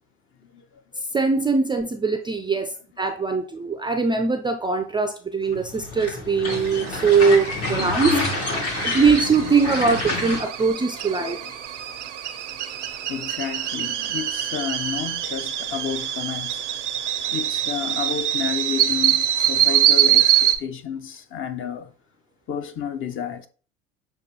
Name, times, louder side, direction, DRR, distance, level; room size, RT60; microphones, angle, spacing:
voice 1, 1.1-8.2 8.5-11.4, right 4 dB, 15° right, 0.3 m, -21 dB
sound 1, 5.5-10.4, left 2 dB, 70° left, 1.8 m, -27 dB
sound 2, 6.5-20.6, right 11 dB, 90° right, 0.5 m, -24 dB
voice 2, 11.2-11.5 13.1-16.6 17.3-21.9 22.5-23.5, left 7 dB, 35° left, 0.6 m, -31 dB
6.5 x 2.3 x 2.8 m
hypercardioid pair, 70°, 35 cm